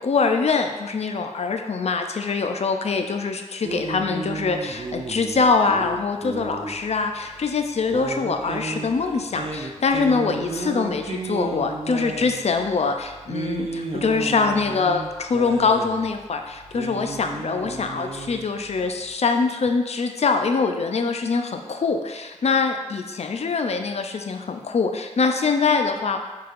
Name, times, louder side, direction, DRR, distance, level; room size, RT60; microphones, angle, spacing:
voice 1, 0.0-26.2, left 4 dB, 55° left, 5 dB, 0.4 m, -23 dB
sound 1, 3.6-19.1, right 3 dB, 45° right, 0.4 m, -34 dB
4.6 x 2.9 x 2.5 m, 1.2 s
wide cardioid pair, 65°, 13 cm